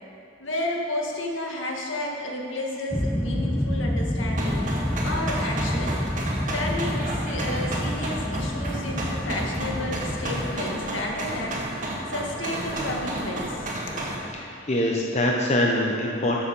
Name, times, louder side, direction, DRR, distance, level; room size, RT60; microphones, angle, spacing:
voice 1, 0.4-4.6 5.0-6.0 6.5-11.6 12.1-14.0, left 1 dB, 85° left, -1 dB, 1.8 m, -31 dB
sound 1, 2.9-10.6, left 1 dB, 5° left, 0.3 m, -28 dB
sound 2, 4.4-14.2, right 1 dB, 45° right, 1.6 m, -32 dB
voice 2, 14.3-16.4, left 1 dB, 35° left, -1 dB, 0.8 m, -24 dB
13.0 x 7.1 x 5.4 m, 2.7 s
head